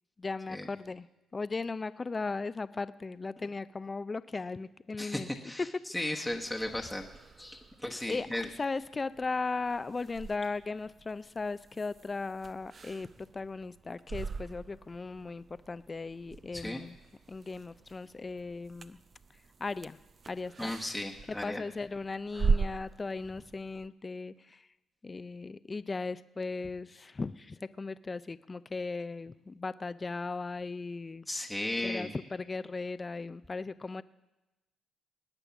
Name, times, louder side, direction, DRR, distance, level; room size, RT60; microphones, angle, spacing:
voice 1, 0.2-1.1 1.3-5.3 6.1-6.3 8.1-17.0 17.3-19.0 19.6-20.0 20.3-20.7 21.4-24.7 25.0-31.3 31.8-34.0, left 3 dB, 25° left, 15 dB, 0.4 m, -37 dB
voice 2, 5.0-5.7 5.9-7.1 7.4-8.5 16.5-16.8 20.6-21.6 31.3-32.1, left 1 dB, 5° left, 0 dB, 1.1 m, -35 dB
sound 1, 6.3-23.9, right 4 dB, 40° right, 0.6 m, -40 dB
19.0 x 8.9 x 7.1 m, 1.0 s
cardioid pair, 90°, 0 cm